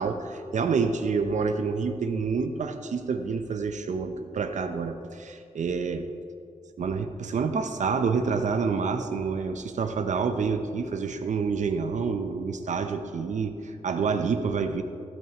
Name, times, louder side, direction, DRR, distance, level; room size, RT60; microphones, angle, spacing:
voice 1, 0.0-6.1 6.8-14.8, right 5 dB, 70° right, 7 dB, 0.7 m, -28 dB
15.5 x 9.0 x 3.0 m, 2.4 s
wide cardioid pair, 165°, 13 cm